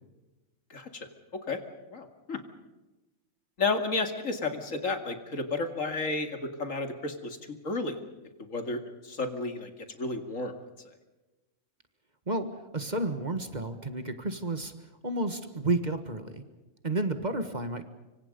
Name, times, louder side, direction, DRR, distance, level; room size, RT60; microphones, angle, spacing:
voice 1, 0.7-1.1 1.3-1.6 1.9-2.4 3.6-7.4 7.6-7.9 8.4-10.5, left 3 dB, 75° left, 6 dB, 2.6 m, -32 dB
voice 2, 12.7-14.7 15.0-16.4 16.8-17.9, right 2 dB, 35° right, 9 dB, 1.7 m, -31 dB
25.5 x 25.0 x 5.3 m, 1.1 s
omnidirectional pair, 1.4 m